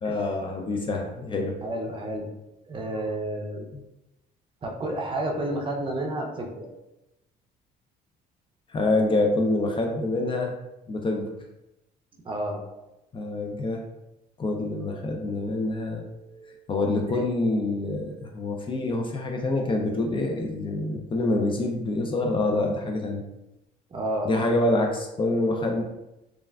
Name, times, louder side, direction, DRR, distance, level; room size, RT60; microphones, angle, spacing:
voice 1, 0.0-1.6 8.7-10.5 10.9-11.3 13.1-13.8 14.4-23.2 24.2-25.8, left 2 dB, 30° left, 2 dB, 0.4 m, -26 dB
voice 2, 1.6-2.3 2.7-3.6 4.6-6.7 12.2-12.6 16.8-17.2 23.9-24.5, right 1 dB, 30° right, 1 dB, 0.5 m, -31 dB
3.2 x 2.3 x 2.3 m, 0.94 s
cardioid pair, 110°, 17 cm